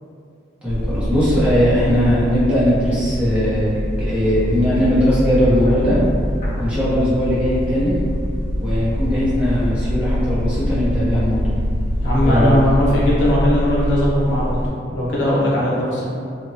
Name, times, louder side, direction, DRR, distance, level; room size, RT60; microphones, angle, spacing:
voice 1, 0.6-6.0 6.6-8.0 8.6-11.6 12.2-12.5, equal, 5° right, -11 dB, 0.6 m, -19 dB
sound 1, 0.7-14.7, equal, 35° left, 0.5 m, -23 dB
voice 2, 12.0-14.6 14.9-16.0, equal, 80° left, -6 dB, 0.7 m, -18 dB
2.8 x 2.1 x 2.6 m, 2.4 s
head